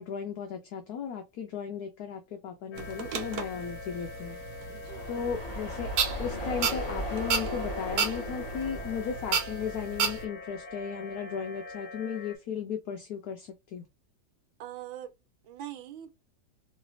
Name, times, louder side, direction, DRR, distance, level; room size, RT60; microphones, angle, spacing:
voice 1, 0.0-4.4 5.1-5.9 6.2-13.8, left 7 dB, 70° left, 0.9 m, -36 dB
sound 1, 2.7-12.4, left 2 dB, 55° left, 1.2 m, -44 dB
sound 2, 2.8-10.2, right 6 dB, 65° right, 1.0 m, -34 dB
voice 2, 4.7-5.0 14.6-15.1 15.4-16.1, right 12 dB, 85° right, 1.4 m, -42 dB
sound 3, 4.8-10.6, equal, 20° left, 1.8 m, -37 dB
3.2 x 3.1 x 2.3 m
omnidirectional pair, 2.0 m